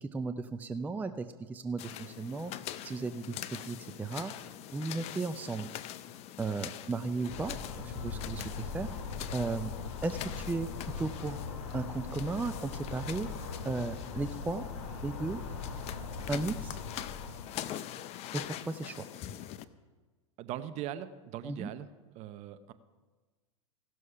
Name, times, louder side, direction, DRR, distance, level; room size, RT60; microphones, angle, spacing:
voice 1, 0.0-2.5 2.8-3.3 3.6-4.3 4.7-5.7 6.4-7.6 7.8-8.9 9.3-9.7 10.0-10.7 11.0-11.4 11.7-13.3 13.7-14.6 15.0-15.4 16.3-16.8 18.3-19.0 21.5-21.7, right 3 dB, 10° right, 9 dB, 0.4 m, -35 dB
sound 1, 1.8-19.6, left 12 dB, 40° left, 0.5 m, -44 dB
sound 2, 7.3-17.5, left 5 dB, 60° left, 2.6 m, -40 dB
voice 2, 20.4-21.9 22.1-22.7, right 11 dB, 45° right, 11 dB, 0.7 m, -40 dB
16.0 x 6.3 x 5.6 m, 1.3 s
hypercardioid pair, 100°, 17 cm